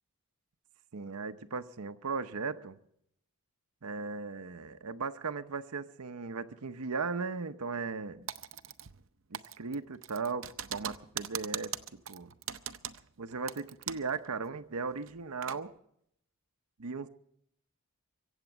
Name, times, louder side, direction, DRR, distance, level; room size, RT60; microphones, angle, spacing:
voice 1, 0.9-2.8 3.8-8.2 9.3-12.3 13.2-15.7 16.8-17.1, right 4 dB, 90° right, 9 dB, 0.8 m, -37 dB
Typing, 8.3-9.1 9.3-14.2 14.4-14.5 15.0-15.6, right 9 dB, 60° right, 0.7 m, -40 dB
24.0 x 8.1 x 7.3 m, 0.72 s
head